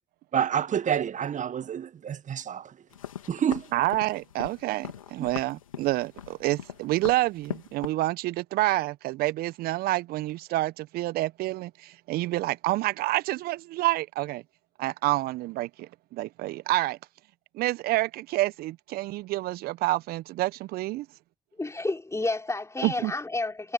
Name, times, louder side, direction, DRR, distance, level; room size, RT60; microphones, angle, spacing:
voice 1, 0.3-2.7 3.3-3.7, right 9 dB, 50° right, 1.7 m, -28 dB
sound 1, 2.9-7.9, left 10 dB, 85° left, 3.2 m, -41 dB
voice 2, 3.7-14.4 14.8-17.0 17.5-21.1 22.8-23.1, right 18 dB, 65° right, 1.3 m, -28 dB
voice 3, 21.6-23.7, left 2 dB, 15° left, 3.8 m, -30 dB
figure-of-eight pair, 45°, 17 cm